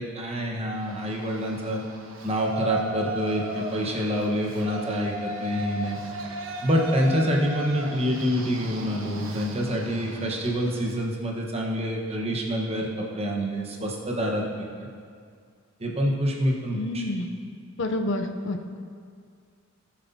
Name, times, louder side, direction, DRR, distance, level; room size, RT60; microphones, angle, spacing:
voice 1, 0.0-1.8 2.2-6.0 6.6-14.9 15.8-17.0, equal, 30° right, -1 dB, 1.2 m, -27 dB
Yell, 0.8-11.0, right 1 dB, 80° right, 1.1 m, -37 dB
voice 2, 16.7-17.3 17.8-18.8, left 1 dB, 65° left, 6 dB, 0.6 m, -29 dB
17.5 x 7.3 x 2.8 m, 2.2 s
head